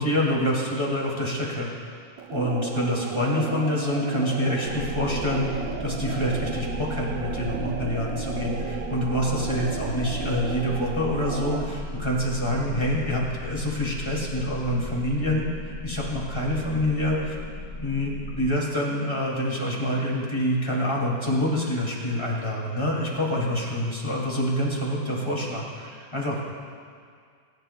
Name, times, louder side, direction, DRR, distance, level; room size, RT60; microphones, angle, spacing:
voice 1, 0.0-1.7 2.3-17.4 17.8-26.4, left 1 dB, 15° left, -4 dB, 2.2 m, -26 dB
sound 1, 2.2-11.8, right 7 dB, 65° right, 1.0 m, -34 dB
sound 2, 4.7-18.5, left 2 dB, 60° left, 1.0 m, -36 dB
21.5 x 10.5 x 2.2 m, 2.1 s
omnidirectional pair, 1.8 m